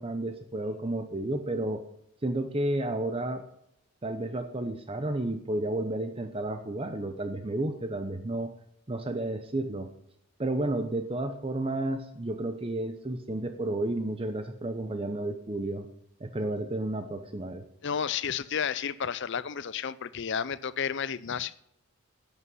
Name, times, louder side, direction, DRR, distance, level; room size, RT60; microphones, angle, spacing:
voice 1, 0.0-1.8 2.2-3.4 4.0-8.5 8.9-9.9 10.4-15.9 16.2-17.6, right 1 dB, 25° right, 8 dB, 0.7 m, -31 dB
voice 2, 17.8-21.6, left 7 dB, 55° left, 17 dB, 0.5 m, -32 dB
11.5 x 8.4 x 5.6 m, 0.77 s
head